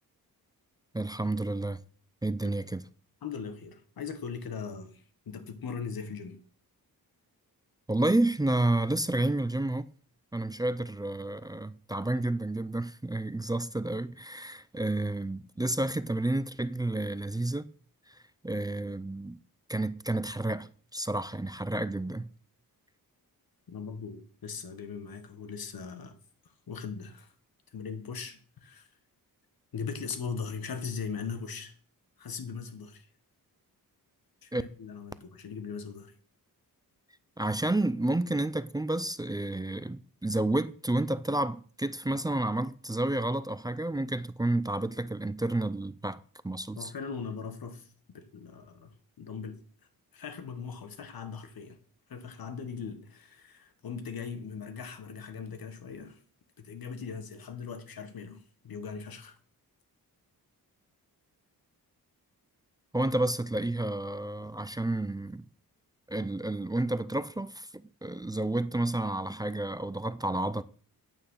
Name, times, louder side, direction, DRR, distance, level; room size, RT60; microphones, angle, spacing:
voice 1, 0.9-1.8 2.2-2.8 7.9-9.9 10.3-17.7 18.4-19.4 19.7-22.3 34.5-34.6 37.4-46.9 62.9-65.4 66.1-70.6, right 2 dB, 10° right, 0.5 m, -30 dB
voice 2, 3.2-6.4 23.7-26.2 26.7-27.3 27.7-28.9 29.7-31.7 32.2-33.1 34.4-36.1 46.8-49.6 50.1-51.8 52.1-56.2 56.6-59.3, left 6 dB, 70° left, 1.7 m, -39 dB
9.0 x 8.7 x 5.6 m
cardioid pair, 90°, 37 cm